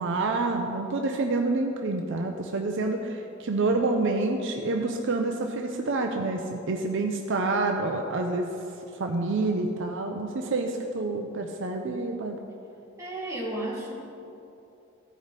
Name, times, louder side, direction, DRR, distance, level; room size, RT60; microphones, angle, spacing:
voice 1, 0.0-8.5 8.9-12.4, right 3 dB, 65° right, 3 dB, 0.6 m, -28 dB
voice 2, 13.0-13.9, right 1 dB, 15° right, -7 dB, 2.3 m, -33 dB
15.0 x 5.1 x 4.1 m, 2.7 s
head